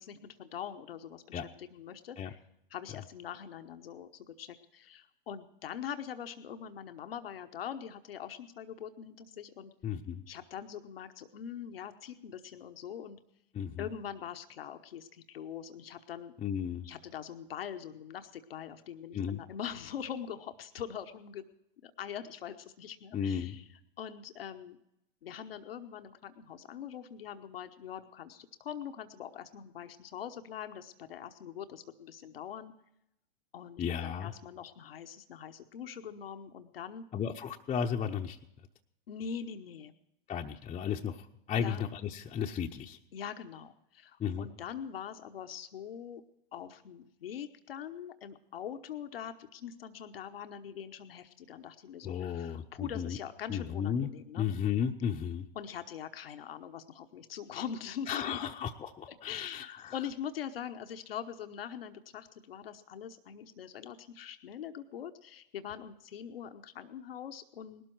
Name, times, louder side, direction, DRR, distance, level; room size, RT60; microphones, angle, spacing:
voice 1, 0.0-2.4 2.7-9.7 10.3-13.2 13.8-16.3 16.8-21.4 21.8-23.6 24.0-24.8 25.2-32.7 33.5-37.0 39.1-39.9 41.5-41.8 43.1-46.2 46.5-54.5 55.5-58.5 59.2-67.8, left 8 dB, 80° left, 8 dB, 1.0 m, -43 dB
voice 2, 9.8-10.2 13.5-13.8 16.4-16.9 19.1-19.4 23.1-23.5 33.8-34.3 37.1-38.4 40.3-43.0 44.2-44.5 52.0-53.2 53.5-54.1 54.4-55.4 58.1-59.9, left 8 dB, 20° left, 1 dB, 0.8 m, -34 dB
19.0 x 12.5 x 4.6 m, 0.82 s
hypercardioid pair, 110°, 29 cm